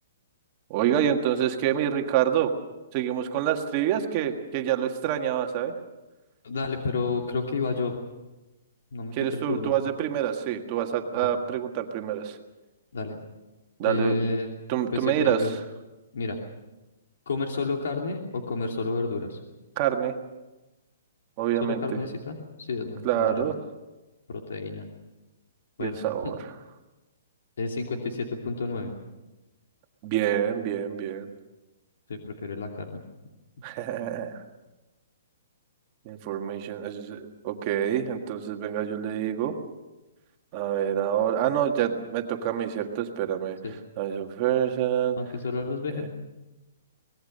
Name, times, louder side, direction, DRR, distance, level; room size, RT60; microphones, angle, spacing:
voice 1, 0.7-2.5 2.9-5.7 9.1-12.3 13.8-14.2 14.7-15.4 19.8-20.1 21.4-21.8 23.0-23.5 25.8-26.4 30.0-31.2 33.6-34.3 36.0-39.5 40.5-43.6 44.0-45.2 46.0-46.1, right 10 dB, 25° right, 4 dB, 1.7 m, -27 dB
voice 2, 6.4-7.9 8.9-9.7 12.9-13.2 13.8-14.5 14.9-15.5 16.1-16.4 17.3-19.4 21.6-23.5 24.3-24.9 25.8-26.3 27.6-28.9 32.1-33.0 43.6-43.8 45.2-46.1, left 3 dB, 75° left, 2 dB, 2.8 m, -30 dB
24.0 x 19.5 x 6.7 m, 1.1 s
hypercardioid pair, 175°, 0 cm